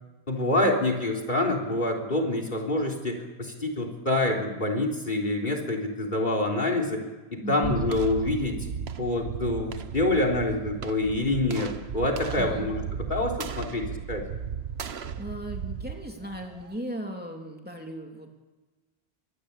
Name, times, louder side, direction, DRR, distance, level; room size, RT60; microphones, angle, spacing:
voice 1, 0.3-7.0 7.3-8.6 9.0-14.2, left 2 dB, 50° left, 4 dB, 3.7 m, -26 dB
voice 2, 7.4-7.8 12.4-12.7 15.2-18.4, equal, 10° right, 1 dB, 3.0 m, -37 dB
sound 1, 7.6-16.8, right 7 dB, 90° right, 1.3 m, -35 dB
24.0 x 22.0 x 8.4 m, 1.2 s
omnidirectional pair, 1.0 m